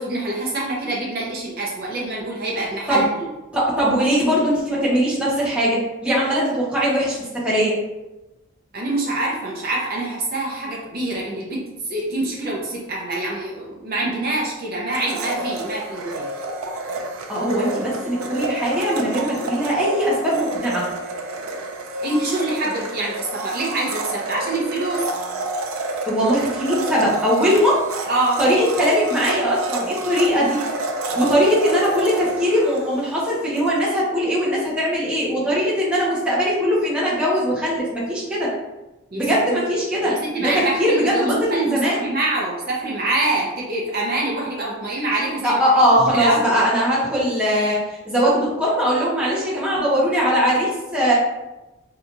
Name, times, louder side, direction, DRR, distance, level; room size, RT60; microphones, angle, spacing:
voice 1, 0.0-3.3 8.7-16.3 22.0-25.0 28.1-28.4 39.1-39.6 40.0-45.6 46.1-46.6, right 2 dB, 45° right, -3 dB, 0.6 m, -25 dB
voice 2, 3.5-7.8 17.3-20.8 26.0-27.8 28.4-30.6 31.2-38.5 39.2-40.5 40.8-42.0 45.4-51.1, equal, 5° right, -8 dB, 0.7 m, -20 dB
Domestic sounds home sounds, 14.9-33.7, right 2 dB, 80° right, 0.4 m, -29 dB
2.8 x 2.4 x 3.8 m, 1.0 s
head